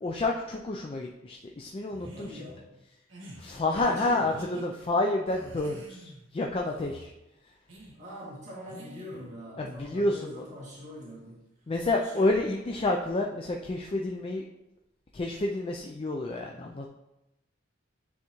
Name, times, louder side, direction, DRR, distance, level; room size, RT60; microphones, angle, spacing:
voice 1, 0.0-2.4 3.4-7.1 9.6-10.4 11.7-14.4 15.1-16.9, left 2 dB, 30° left, 1 dB, 0.4 m, -29 dB
sound 1, 1.9-2.5 3.1-3.4 4.1-4.7 5.3-6.2 6.6-7.1 7.7-7.9 8.7-9.3, equal, 75° right, 1.5 m, -47 dB
voice 2, 2.1-2.7 3.6-4.4 7.9-11.4 12.0-12.3, equal, 40° right, -7 dB, 1.8 m, -43 dB
9.5 x 3.5 x 3.0 m, 0.92 s
head